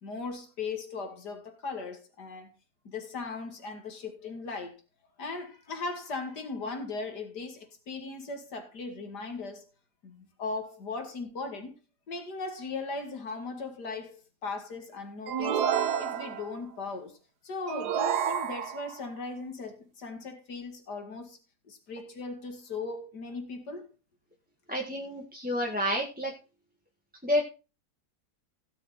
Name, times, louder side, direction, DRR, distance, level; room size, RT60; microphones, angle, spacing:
voice 1, 0.0-2.5 2.8-4.8 5.2-9.7 10.0-11.8 12.1-15.7 15.9-17.2 17.4-21.4 21.7-23.9, left 3 dB, 90° left, 2.8 m, -38 dB
sound 1, 15.3-16.6 17.7-19.0, right 8 dB, 80° right, 1.5 m, -29 dB
voice 2, 24.7-26.3 27.2-27.4, equal, 5° right, 1.6 m, -29 dB
17.0 x 6.6 x 4.3 m
omnidirectional pair, 1.7 m